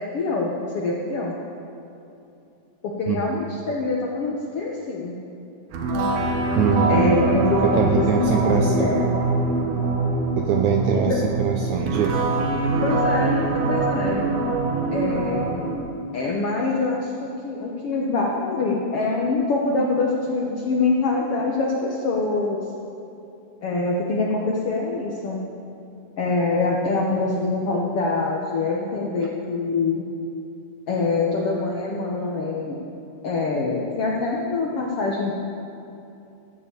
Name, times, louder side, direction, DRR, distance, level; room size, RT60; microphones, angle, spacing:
voice 1, 0.0-1.3 2.8-5.2 6.9-8.0 8.4-9.2 11.1-11.2 12.8-14.2 14.9-15.4 16.1-22.6 23.6-25.4 26.2-30.0 30.9-32.8 33.2-35.3, left 3 dB, 75° left, -2 dB, 1.3 m, -24 dB
sound 1, 5.7-15.8, right 2 dB, 65° right, 2.3 m, -23 dB
voice 2, 6.6-7.1 7.6-9.0 10.4-12.2, right 7 dB, 85° right, 3 dB, 1.7 m, -23 dB
14.0 x 7.4 x 8.4 m, 2.8 s
omnidirectional pair, 4.3 m